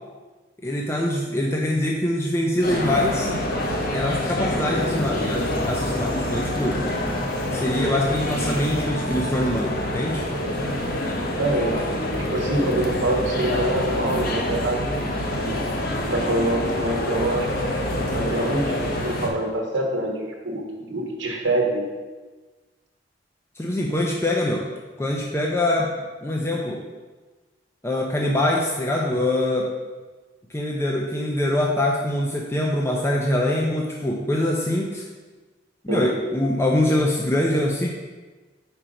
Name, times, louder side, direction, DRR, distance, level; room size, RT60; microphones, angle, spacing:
voice 1, 0.6-3.3 3.9-6.8 7.5-10.2 23.6-24.7 25.0-25.9 26.2-26.8 27.8-29.7 30.5-35.1 35.8-37.9, left 1 dB, 15° left, -1 dB, 0.5 m, -24 dB
sound 1, 2.6-19.3, left 1 dB, 55° left, 0.9 m, -26 dB
sound 2, 4.7-9.6, left 1 dB, 85° left, 1.9 m, -43 dB
voice 2, 11.4-11.8 12.3-15.5 16.0-17.5 18.1-21.8 35.9-36.0, right 1 dB, 80° right, 1 dB, 1.0 m, -25 dB
5.0 x 4.4 x 5.0 m, 1.3 s
head